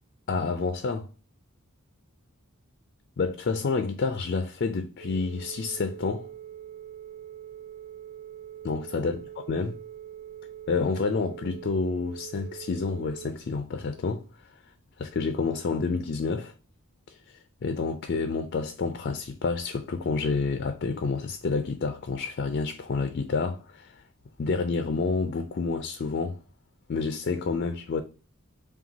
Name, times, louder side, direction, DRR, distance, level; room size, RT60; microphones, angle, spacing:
voice 1, 0.3-1.1 3.2-6.3 8.6-9.2 9.5-9.8 10.7-14.2 15.0-16.5 17.1-24.0 24.4-26.4 26.9-28.0, left 4 dB, 50° left, 0.4 m, -29 dB
Telephone, 5.0-13.3, right 10 dB, 35° right, 0.8 m, -43 dB
5.8 x 2.3 x 2.6 m
head